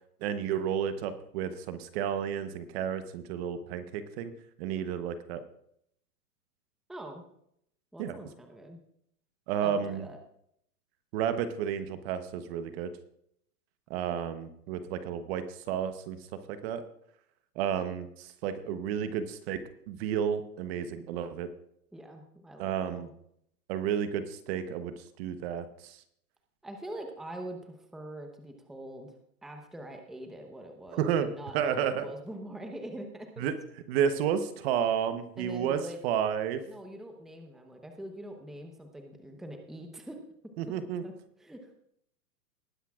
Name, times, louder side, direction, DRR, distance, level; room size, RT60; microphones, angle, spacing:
voice 1, 0.2-4.3 4.6-5.4 8.0-8.1 9.5-10.0 11.1-12.9 13.9-16.2 16.5-16.8 17.6-19.6 19.9-21.5 22.6-23.1 23.7-26.0 30.9-31.3 31.5-32.1 33.4-33.5 33.9-36.6 40.6-41.0, right 8 dB, 40° right, 10 dB, 1.0 m, -31 dB
voice 2, 6.9-7.3 7.9-8.8 9.6-10.2 21.9-23.1 26.6-29.1 29.4-33.4 35.4-36.0 36.7-40.2 41.0-41.7, right 1 dB, ahead, 4 dB, 0.9 m, -43 dB
19.5 x 10.0 x 2.4 m, 0.71 s
hypercardioid pair, 135°, 46 cm